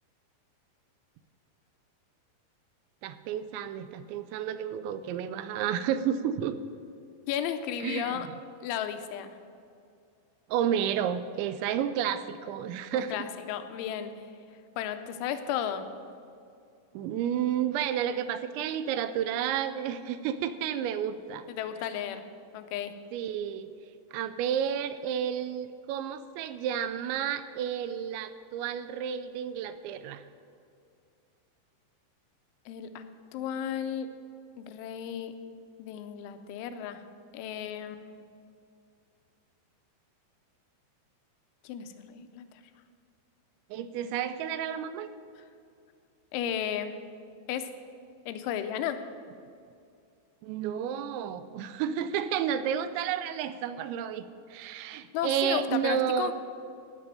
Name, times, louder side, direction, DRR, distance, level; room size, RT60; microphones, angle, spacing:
voice 1, 3.0-6.6 7.8-8.2 10.5-13.3 16.9-21.5 23.1-23.7 24.1-30.2 43.7-45.1 50.4-56.3, right 9 dB, 85° right, 12 dB, 2.9 m, -31 dB
voice 2, 7.3-8.3 8.6-9.4 12.9-14.1 14.8-15.8 21.5-22.2 22.5-22.9 32.7-33.0 33.3-34.1 34.6-35.3 35.8-37.0 37.3-38.2 41.6-42.5 46.3-46.9 47.5-47.7 48.3-49.0 55.1-56.3, left 9 dB, 85° left, 9 dB, 3.2 m, -34 dB
16.0 x 6.0 x 9.1 m, 2.4 s
omnidirectional pair, 5.3 m